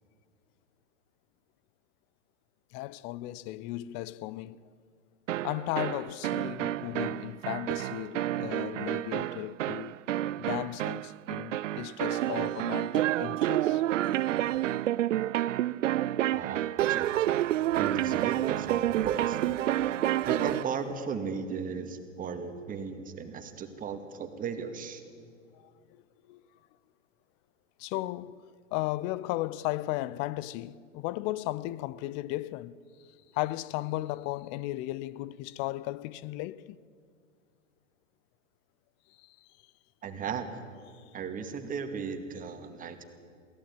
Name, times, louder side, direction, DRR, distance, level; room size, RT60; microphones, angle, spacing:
voice 1, 2.7-4.6 5.4-10.0 10.4-13.8 25.5-26.0 26.3-26.4 27.8-28.4 28.7-32.8 33.3-36.8 39.2-39.5 40.9-41.0, left 16 dB, 30° left, 0.6 m, -35 dB
sound 1, 5.3-20.8, right 13 dB, 70° right, 0.6 m, -29 dB
voice 2, 16.3-17.1 17.8-19.6 20.2-25.0 40.0-40.5 41.1-43.0, right 6 dB, 20° right, 2.3 m, -36 dB
22.5 x 17.0 x 9.1 m
hypercardioid pair, 115°, 39 cm